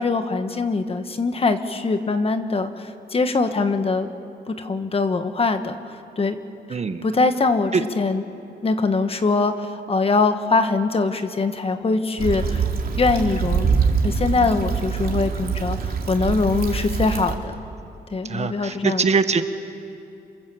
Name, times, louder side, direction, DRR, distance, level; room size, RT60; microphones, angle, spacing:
voice 1, 0.0-4.1 4.5-6.4 6.7-8.2 8.6-12.6 13.0-13.7 14.0-17.6 18.1-19.0, left 3 dB, 35° left, 8 dB, 1.5 m, -23 dB
voice 2, 6.7-7.0 18.3-19.4, right 5 dB, 40° right, 9 dB, 1.4 m, -22 dB
Stream / Traffic noise roadway noise / Trickle dribble, 12.2-17.3, right 5 dB, 60° right, 3.0 m, -24 dB
28.0 x 26.5 x 7.9 m, 2.6 s
cardioid pair, 120°, 18 cm